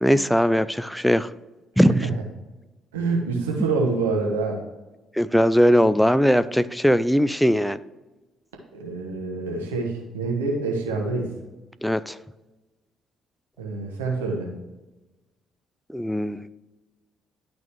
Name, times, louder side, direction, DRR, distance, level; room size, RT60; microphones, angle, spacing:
voice 1, 0.0-1.3 1.8-2.1 5.2-7.8 11.8-12.2 15.9-16.5, equal, ahead, 14 dB, 0.4 m, -20 dB
voice 2, 2.9-4.6 8.7-11.3 13.6-14.5, right 3 dB, 80° right, 0 dB, 1.3 m, -26 dB
11.5 x 4.1 x 3.2 m, 1.1 s
figure-of-eight pair, 45°, 0 cm